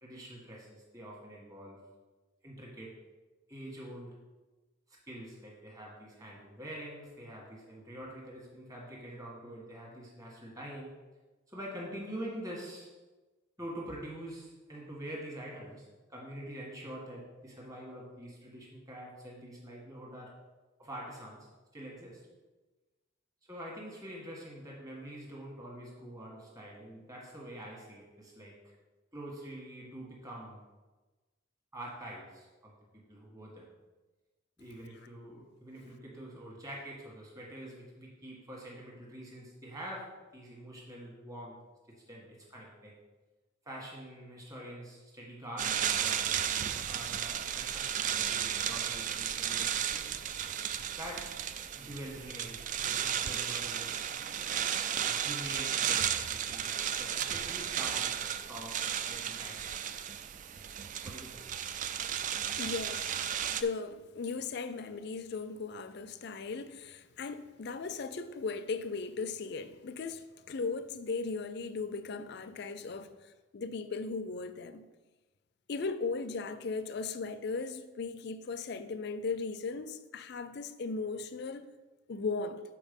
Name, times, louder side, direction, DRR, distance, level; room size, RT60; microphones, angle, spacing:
voice 1, 0.0-1.9 2.4-3.0 3.5-4.2 4.9-11.0 11.5-12.9 13.6-20.3 20.8-22.3 23.5-28.7 29.1-30.6 31.7-33.7 34.6-41.6 41.9-42.9 43.6-46.4 46.9-50.2 51.0-51.4 51.7-54.3 55.0-59.8 61.0-61.4, right 1 dB, 15° right, 1.5 m, -45 dB
sound 1, 45.6-63.6, right 9 dB, 40° right, 0.3 m, -34 dB
voice 2, 62.6-63.1 63.5-73.1 73.5-74.9 75.7-81.7 82.1-82.6, left 4 dB, 55° left, 0.4 m, -37 dB
7.2 x 4.5 x 5.3 m
head